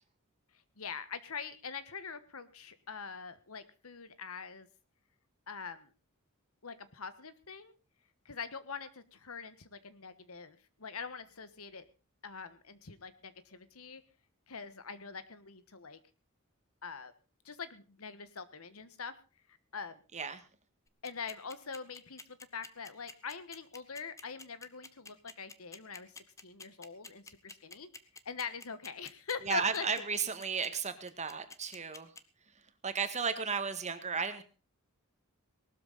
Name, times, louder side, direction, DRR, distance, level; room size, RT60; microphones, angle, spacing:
voice 1, 0.8-4.7 5.5-5.9 6.6-7.7 8.2-11.9 12.2-14.0 14.5-16.0 16.8-17.1 17.4-19.1 19.7-20.0 21.0-27.9 28.2-29.8, left 5 dB, 75° left, 13 dB, 1.4 m, -43 dB
sound 1, 20.9-32.2, left 3 dB, 15° left, 1.1 m, -49 dB
voice 2, 29.4-32.1 32.8-34.4, right 5 dB, 35° right, 9 dB, 1.8 m, -34 dB
19.0 x 13.0 x 4.1 m, 0.33 s
head